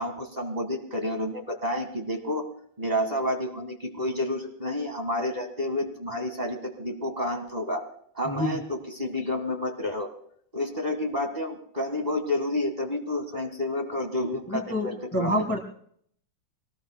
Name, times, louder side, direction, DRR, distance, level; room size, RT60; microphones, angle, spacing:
voice 1, 0.0-2.5 2.8-7.8 8.1-10.1 10.5-15.4, left 1 dB, 20° right, 3 dB, 1.2 m, -30 dB
voice 2, 8.2-8.6 14.5-15.6, left 1 dB, 20° left, 3 dB, 0.4 m, -28 dB
24.0 x 19.0 x 2.2 m, 0.63 s
omnidirectional pair, 3.4 m